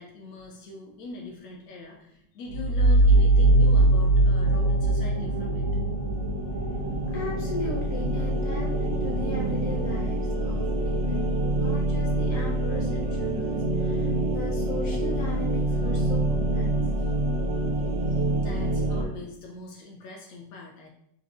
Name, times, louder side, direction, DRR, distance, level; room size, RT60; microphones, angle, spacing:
voice 1, 0.0-5.7 8.4-8.5 17.0-17.1 18.0-20.9, left 3 dB, 75° left, -1 dB, 0.8 m, -42 dB
sound 1, 2.5-11.8, right 2 dB, 55° right, 0.7 m, -24 dB
sound 2, 5.2-19.0, right 1 dB, 85° right, 1.3 m, -27 dB
voice 2, 7.1-16.7, left 1 dB, 50° left, -4 dB, 1.2 m, -37 dB
5.9 x 2.1 x 2.4 m, 0.77 s
omnidirectional pair, 2.0 m